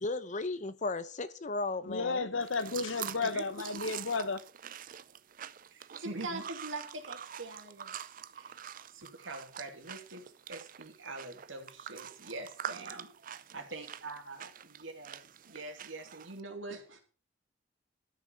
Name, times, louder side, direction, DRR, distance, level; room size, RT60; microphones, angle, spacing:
voice 1, 0.0-2.3, left 3 dB, 40° left, 0.8 m, -35 dB
voice 2, 1.9-4.4, left 3 dB, 90° left, 1.1 m, -33 dB
sound 1, 2.4-16.4, right 9 dB, 45° right, 0.5 m, -46 dB
voice 3, 3.2-3.8 5.7-8.6 8.9-17.0, right 2 dB, 90° right, 2.9 m, -44 dB
13.0 x 6.2 x 7.1 m
head